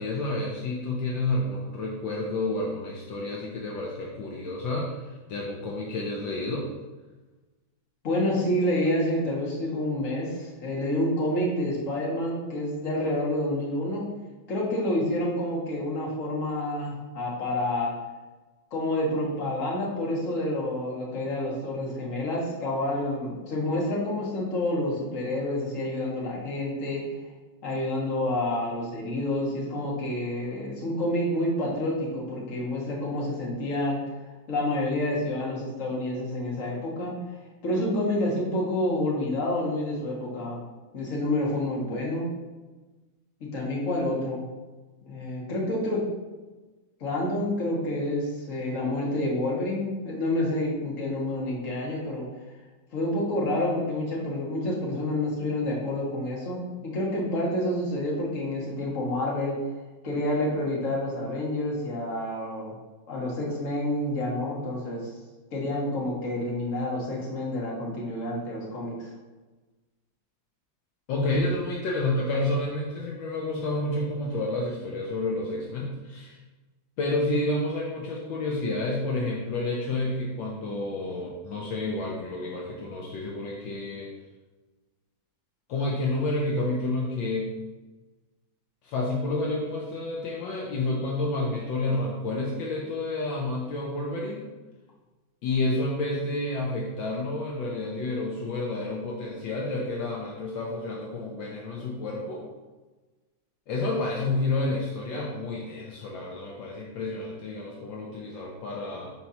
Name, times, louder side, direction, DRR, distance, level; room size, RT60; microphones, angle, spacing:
voice 1, 0.0-6.7 71.1-76.4 77.0-84.1 85.7-87.5 88.8-94.5 95.4-102.5 103.7-109.1, left 2 dB, 70° left, -2 dB, 1.5 m, -30 dB
voice 2, 8.0-14.0 14.5-17.9 18.7-27.0 27.6-34.0 34.5-37.2 37.6-40.7 40.9-42.3 43.4-44.4 45.0-46.0 47.0-52.3 52.9-59.6 60.0-62.7 63.1-65.1 65.5-69.1, left 1 dB, 40° left, -3 dB, 1.7 m, -28 dB
4.6 x 4.1 x 5.6 m, 1.2 s
omnidirectional pair, 2.2 m